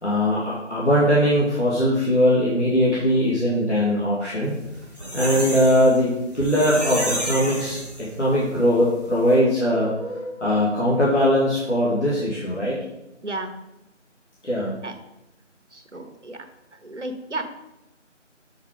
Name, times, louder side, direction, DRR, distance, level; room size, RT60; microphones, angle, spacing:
voice 1, 0.0-4.5 5.1-12.8 14.4-14.7, equal, 70° left, -7 dB, 2.4 m, -20 dB
sound 1, 4.6-8.4 8.8-8.9 9.2-9.3, equal, 35° left, 2.1 m, -30 dB
voice 2, 15.7-16.4 16.8-17.4, right 2 dB, 70° right, 6 dB, 1.2 m, -32 dB
8.0 x 4.6 x 4.9 m, 0.93 s
figure-of-eight pair, 175°, 37 cm